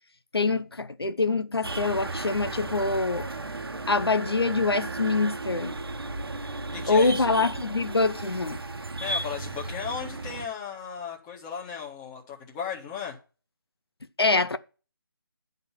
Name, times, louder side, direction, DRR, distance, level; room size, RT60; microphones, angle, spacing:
voice 1, 0.3-3.3 3.9-5.7 6.7-8.6 14.2-14.6, left 3 dB, 85° left, 1.0 m, -25 dB
sound 1, 1.6-10.5, right 2 dB, 75° right, 1.1 m, -35 dB
voice 2, 6.7-7.3 9.0-13.2, left 7 dB, 15° left, 1.7 m, -35 dB
10.5 x 4.0 x 7.3 m
figure-of-eight pair, 160°, 13 cm